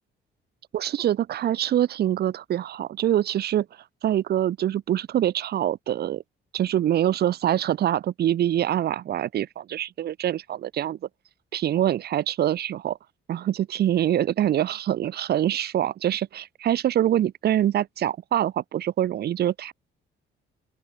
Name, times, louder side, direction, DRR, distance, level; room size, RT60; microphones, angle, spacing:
voice 1, 0.7-3.7 4.0-6.2 6.5-11.0 11.5-13.0 13.3-19.7, right 11 dB, 55° right, 0.5 m, -24 dB
open air
cardioid pair, 90°, 20 cm